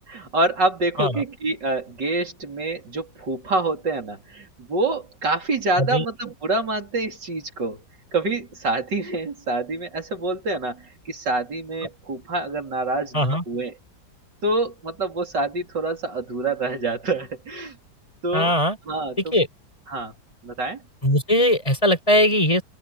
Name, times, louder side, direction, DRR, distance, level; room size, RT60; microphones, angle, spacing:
voice 1, 0.0-7.8 8.1-13.8 14.4-17.8 18.2-18.5 18.9-19.4 19.9-20.1 20.4-20.8, right 2 dB, 90° right, 4.5 m, -26 dB
voice 2, 18.3-18.8 19.3-19.5 21.0-22.6, left 1 dB, 20° left, 5.3 m, -19 dB
open air
omnidirectional pair, 1.8 m